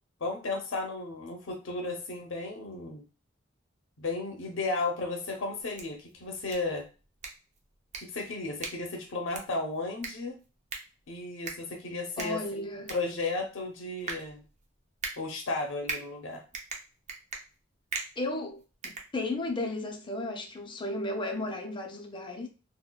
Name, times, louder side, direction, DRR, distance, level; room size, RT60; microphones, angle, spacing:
voice 1, 0.2-3.0 4.0-6.8 8.0-10.4 11.1-12.6 12.9-14.4 15.2-16.4, left 3 dB, 70° left, 0.6 m, -34 dB
sound 1, 5.5-19.7, right 4 dB, 35° right, 0.6 m, -43 dB
voice 2, 12.2-12.9 18.2-22.5, left 2 dB, 25° left, 0.5 m, -34 dB
3.8 x 2.1 x 2.2 m
head